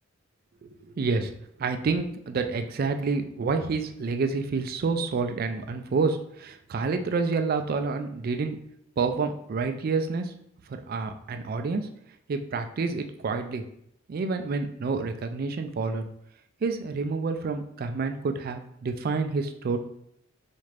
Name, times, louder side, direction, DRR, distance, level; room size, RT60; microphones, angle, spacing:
voice 1, 0.6-1.3 1.6-8.6 9.0-10.3 10.7-11.9 12.3-13.6 14.1-16.0 16.6-19.8, right 4 dB, 45° right, 7 dB, 0.3 m, -28 dB
4.2 x 2.4 x 3.2 m, 0.75 s
head